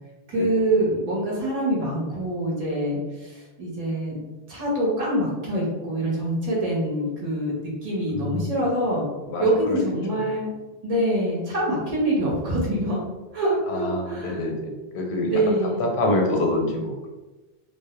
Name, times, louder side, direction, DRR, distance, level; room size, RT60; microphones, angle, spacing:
voice 1, 0.3-4.2 4.5-9.1 9.4-10.5 10.8-13.0 13.3-14.4 15.2-15.8, right 1 dB, 40° right, -4 dB, 0.8 m, -25 dB
voice 2, 8.1-8.5 9.3-9.8 13.7-15.4 15.8-17.1, left 2 dB, 90° left, 1 dB, 0.8 m, -26 dB
2.1 x 2.1 x 2.9 m, 1.1 s
omnidirectional pair, 1.1 m